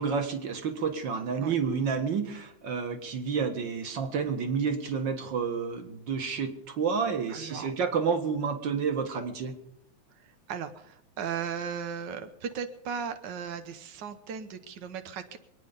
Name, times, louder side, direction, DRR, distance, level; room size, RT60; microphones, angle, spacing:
voice 1, 0.0-9.5, right 6 dB, 45° right, 6 dB, 1.9 m, -30 dB
voice 2, 7.3-7.7 10.2-15.4, right 7 dB, 80° right, 8 dB, 1.0 m, -37 dB
24.5 x 9.6 x 5.2 m, 0.81 s
omnidirectional pair, 3.3 m